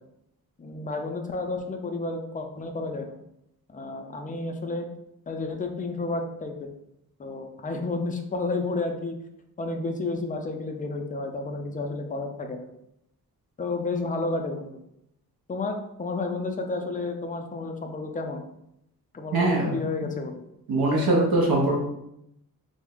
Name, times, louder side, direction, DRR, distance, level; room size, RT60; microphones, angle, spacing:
voice 1, 0.6-3.2 3.7-4.9 5.3-6.7 7.2-9.2 9.6-12.7 13.6-14.8 15.5-18.4 19.1-20.5, left 3 dB, 25° left, 4 dB, 0.4 m, -31 dB
voice 2, 19.3-19.7 20.7-21.8, right 2 dB, 70° right, -2 dB, 0.8 m, -22 dB
3.3 x 2.0 x 3.6 m, 0.80 s
wide cardioid pair, 115°, 37 cm